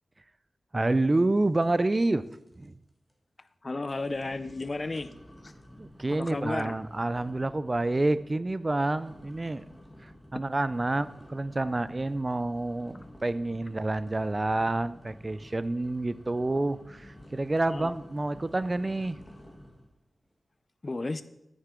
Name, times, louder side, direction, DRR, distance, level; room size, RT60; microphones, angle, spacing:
voice 1, 0.7-2.2 2.6-2.7 5.8-9.6 10.0-19.2, right 2 dB, 25° right, 15 dB, 0.4 m, -28 dB
sound 1, 1.6-2.0 2.3-2.7 3.1-3.2 3.8-19.9, equal, 10° left, 1.4 m, -52 dB
voice 2, 3.6-5.1 5.4-5.5 6.1-6.7 17.7-17.9 20.8-21.2, left 2 dB, 30° left, 13 dB, 0.5 m, -33 dB
9.7 x 9.1 x 3.7 m, 0.86 s
wide cardioid pair, 130°, 0 cm